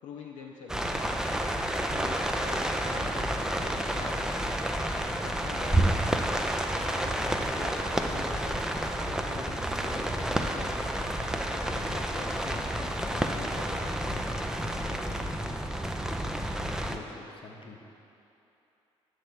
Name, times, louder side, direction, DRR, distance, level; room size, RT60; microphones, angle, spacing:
voice 1, 0.0-1.0 1.8-2.6 2.9-3.5 3.9-4.4 4.9-6.2 6.8-8.7 9.0-10.8 11.5-14.0, left 6 dB, 70° left, -1 dB, 0.5 m, -46 dB
sound 1, 0.7-17.0, right 1 dB, 5° right, 0.4 m, -30 dB
voice 2, 16.8-17.9, left 3 dB, 40° left, 2 dB, 0.8 m, -46 dB
6.7 x 3.3 x 5.9 m, 2.9 s
hypercardioid pair, 50°, 13 cm